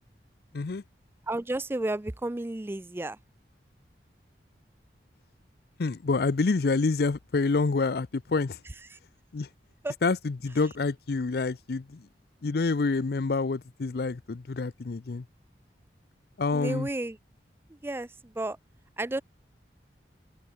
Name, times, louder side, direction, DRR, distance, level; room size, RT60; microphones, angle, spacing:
voice 1, 1.3-3.2 8.9-9.0 9.8-9.9 16.5-17.2 17.8-18.1 18.4-18.6 19.0-19.2, right 2 dB, 15° right, 0.4 m, -32 dB
voice 2, 5.8-8.6 9.3-9.5 10.0-12.1 12.4-15.2 16.4-16.9, left 3 dB, 60° left, 0.5 m, -27 dB
open air
head